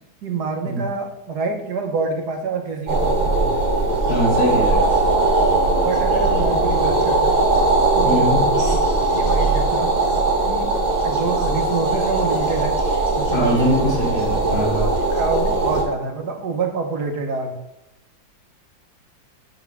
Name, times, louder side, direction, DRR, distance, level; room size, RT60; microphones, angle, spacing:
voice 1, 0.2-3.5 5.8-7.4 7.9-8.4 8.7-9.9 10.5-10.7 11.0-12.8 13.1-13.9 14.8-17.6, right 4 dB, 60° right, 4 dB, 1.5 m, -27 dB
sound 1, 2.9-15.8, right 2 dB, 25° right, 1.2 m, -19 dB
voice 2, 4.1-4.8 8.0-8.5 13.3-14.9, equal, 90° left, -4 dB, 3.2 m, -22 dB
8.2 x 5.7 x 3.5 m, 0.91 s
omnidirectional pair, 2.0 m